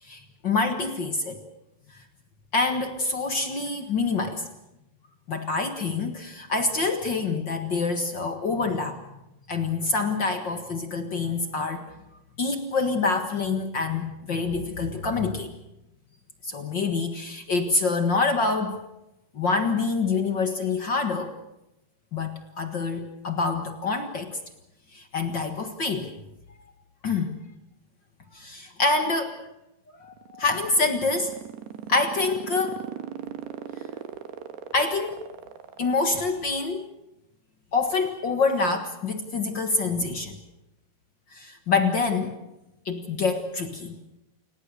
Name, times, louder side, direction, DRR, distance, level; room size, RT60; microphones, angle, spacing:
voice 1, 0.0-1.4 1.9-2.0 2.5-4.5 5.3-9.0 9.5-11.9 12.4-15.5 16.4-18.8 19.3-21.3 22.1-24.4 24.9-26.1 27.0-27.4 28.3-29.4 30.0-31.3 31.9-32.8 34.7-35.3 35.8-36.9 37.7-40.3 41.3-42.4 42.8-44.0, left 3 dB, 60° left, 6 dB, 1.2 m, -26 dB
sound 1, 30.0-36.7, right 10 dB, 85° right, 3.6 m, -38 dB
29.0 x 18.0 x 6.7 m, 0.92 s
omnidirectional pair, 4.7 m